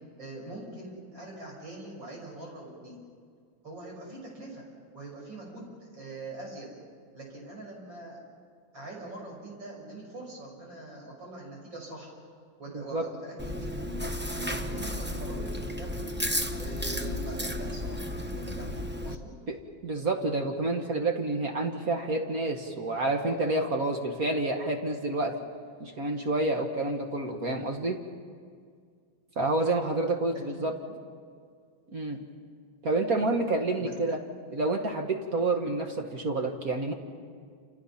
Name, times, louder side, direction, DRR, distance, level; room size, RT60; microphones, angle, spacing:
voice 1, 0.2-3.0 3.6-4.6 4.9-6.7 7.1-8.2 8.7-12.2 12.6-13.8 14.3-16.1 16.6-19.3 30.3-30.5 30.7-31.0 33.8-33.9, right 2 dB, 65° right, -2 dB, 7.1 m, -43 dB
voice 2, 12.7-13.0 19.5-19.6 19.8-25.4 25.8-28.0 29.4-30.7 31.9-32.2 32.8-34.2 34.5-36.9, right 2 dB, 45° right, 3 dB, 2.0 m, -28 dB
Chewing mastication, 13.4-19.1, left 1 dB, 20° right, 0.3 m, -33 dB
28.5 x 28.0 x 5.9 m, 2.1 s
omnidirectional pair, 2.2 m